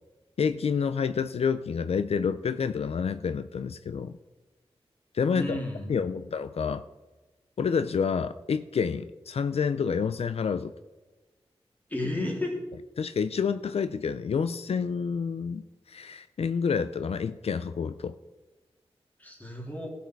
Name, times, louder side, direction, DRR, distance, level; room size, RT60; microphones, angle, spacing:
voice 1, 0.4-4.2 5.1-5.6 5.9-6.8 7.6-10.7 13.0-18.1, left 6 dB, 75° left, 12 dB, 0.4 m, -28 dB
voice 2, 5.3-6.2 11.9-12.6 19.2-19.9, left 1 dB, 15° left, -1 dB, 3.3 m, -33 dB
16.0 x 7.1 x 4.6 m, 1.2 s
wide cardioid pair, 105°, 10 cm